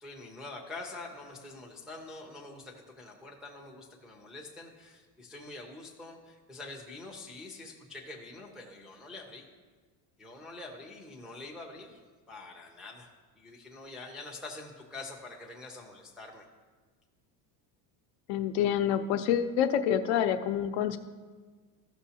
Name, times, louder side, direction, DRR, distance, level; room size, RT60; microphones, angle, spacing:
voice 1, 0.0-9.5 10.2-12.0 12.3-16.5, left 2 dB, ahead, -2 dB, 0.3 m, -45 dB
voice 2, 18.3-21.0, left 9 dB, 75° left, 8 dB, 0.7 m, -27 dB
14.0 x 6.2 x 2.8 m, 1.4 s
cardioid pair, 165°, 46 cm